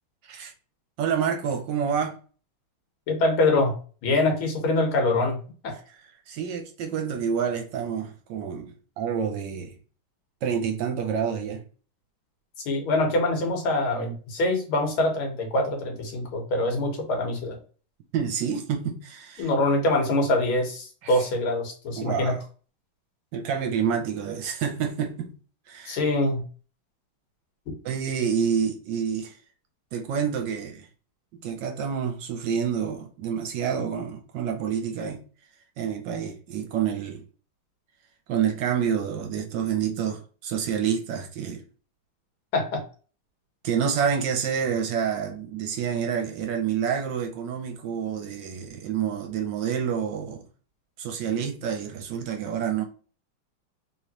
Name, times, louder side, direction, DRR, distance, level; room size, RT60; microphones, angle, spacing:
voice 1, 1.0-2.2 6.0-9.7 10.4-11.6 18.1-19.5 21.0-21.2 21.9-22.4 23.3-25.3 25.7-26.0 27.8-29.3 29.9-30.9 31.3-35.2 35.8-37.2 38.3-41.6 43.6-50.5 51.0-52.8, right 7 dB, 70° right, 1.2 m, -28 dB
voice 2, 3.1-3.7 4.0-5.4 5.6-5.7 12.7-17.6 19.4-22.3 25.9-26.4 42.5-42.8, left 2 dB, 80° left, 2.0 m, -24 dB
3.8 x 3.1 x 2.9 m
omnidirectional pair, 2.3 m